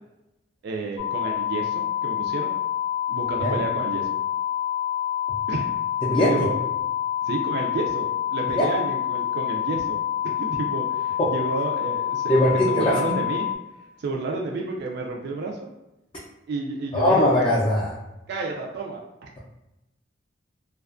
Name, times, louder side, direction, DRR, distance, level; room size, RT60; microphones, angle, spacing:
voice 1, 0.6-2.5 3.1-4.1 5.5-5.7 6.3-6.6 7.2-13.5 13.8-15.7 16.5-17.2 18.3-19.3, right 3 dB, 60° right, 1 dB, 0.3 m, -31 dB
sound 1, 1.0-13.6, left 11 dB, 80° left, 0.6 m, -27 dB
voice 2, 6.0-6.5 8.6-8.7 11.2-11.3 12.3-13.2 16.9-18.0, left 1 dB, 30° left, -6 dB, 0.4 m, -21 dB
2.5 x 2.3 x 2.4 m, 0.94 s
head